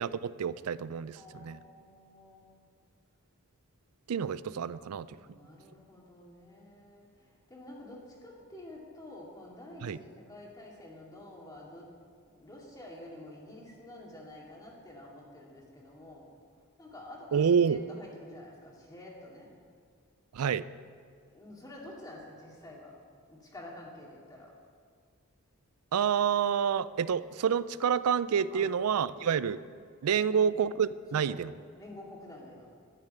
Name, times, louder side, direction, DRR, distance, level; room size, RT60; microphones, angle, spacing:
voice 1, 0.0-1.6 4.1-5.1 9.8-10.0 17.3-17.8 20.3-20.6 25.9-29.6 30.0-31.5, right 7 dB, 80° right, 17 dB, 0.4 m, -28 dB
voice 2, 1.1-2.5 5.2-11.9 12.4-16.3 16.8-19.5 21.3-22.9 23.3-24.5 28.5-28.7 29.1-29.4 30.1-30.5 31.1-31.4 31.7-32.7, left 1 dB, 15° left, -3 dB, 2.3 m, -49 dB
12.0 x 6.6 x 9.3 m, 2.1 s
head